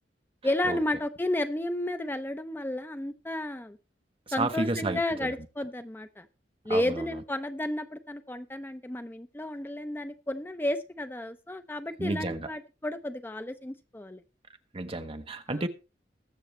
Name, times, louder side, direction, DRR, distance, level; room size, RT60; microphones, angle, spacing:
voice 1, 0.4-3.8 4.3-6.3 6.6-14.2 15.5-15.6, left 1 dB, 10° left, 0.5 m, -32 dB
voice 2, 4.4-5.0 6.7-7.0 12.0-12.5 14.7-15.7, right 2 dB, 35° right, 1.0 m, -31 dB
21.0 x 7.0 x 3.2 m
head